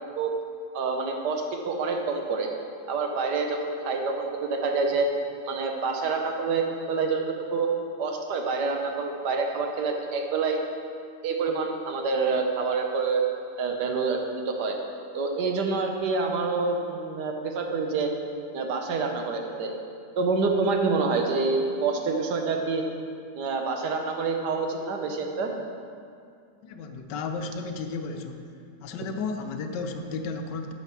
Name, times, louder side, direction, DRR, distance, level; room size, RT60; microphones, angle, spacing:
voice 1, 0.7-2.5 2.9-5.1 5.5-7.2 7.5-7.7 8.0-10.6 11.2-13.2 13.6-14.8 15.1-18.1 18.5-19.7 20.2-22.8 23.4-25.5, right 4 dB, 75° right, 3 dB, 1.5 m, -27 dB
voice 2, 26.6-28.4 28.8-30.7, left 4 dB, 85° left, 6 dB, 1.3 m, -33 dB
8.9 x 5.8 x 5.9 m, 2.4 s
omnidirectional pair, 1.8 m